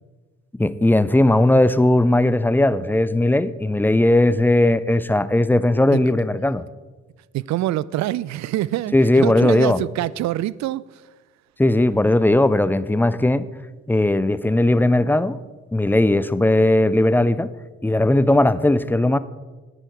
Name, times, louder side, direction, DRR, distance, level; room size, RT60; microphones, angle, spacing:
voice 1, 0.6-6.6 8.9-9.8 11.6-13.5 13.9-15.4 15.7-17.5 17.8-19.2, left 1 dB, 5° left, 0.4 m, -18 dB
voice 2, 7.3-11.0, right 14 dB, 50° right, 0.5 m, -25 dB
9.9 x 9.8 x 4.5 m
hypercardioid pair, 45°, 35 cm